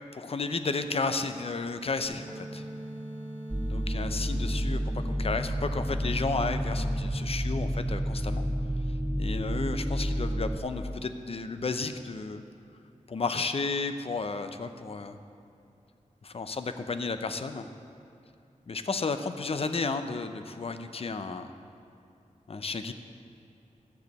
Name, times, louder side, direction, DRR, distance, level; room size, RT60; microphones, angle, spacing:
voice 1, 0.1-2.6 3.7-8.4 9.2-12.4 13.1-15.2 16.2-17.7 18.7-21.5 22.5-22.9, left 4 dB, 50° left, 9 dB, 0.6 m, -33 dB
sound 1, 2.0-7.0, right 1 dB, 45° right, 2.0 m, -42 dB
sound 2, 3.5-10.6, equal, 15° right, 0.4 m, -30 dB
13.5 x 4.9 x 8.0 m, 2.6 s
wide cardioid pair, 105°, 13 cm